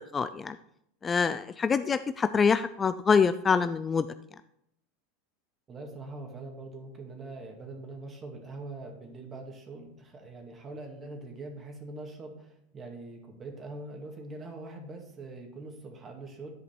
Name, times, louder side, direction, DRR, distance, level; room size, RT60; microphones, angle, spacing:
voice 1, 0.1-0.6 1.0-4.1, left 5 dB, 25° left, 12 dB, 0.3 m, -25 dB
voice 2, 5.7-16.5, right 2 dB, 30° right, 2 dB, 2.1 m, -43 dB
10.5 x 5.0 x 4.4 m, 0.75 s
hypercardioid pair, 100°, 0 cm